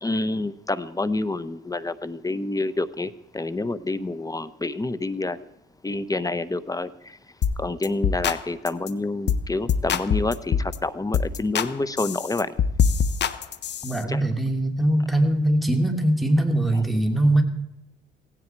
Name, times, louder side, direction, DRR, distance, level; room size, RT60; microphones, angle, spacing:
voice 1, 0.0-5.5 5.8-7.2 7.6-12.5 14.1-14.2, left 2 dB, 20° left, 16 dB, 0.9 m, -28 dB
sound 1, 7.4-7.6 7.8-8.4 8.7-8.9 9.3-9.4 9.7-10.8 11.1-11.7 12.0-14.0, left 7 dB, 60° left, 1.0 m, -24 dB
voice 2, 13.8-17.4, right 1 dB, ahead, 5 dB, 2.9 m, -21 dB
17.0 x 16.0 x 4.6 m, 0.85 s
cardioid pair, 90°, 20 cm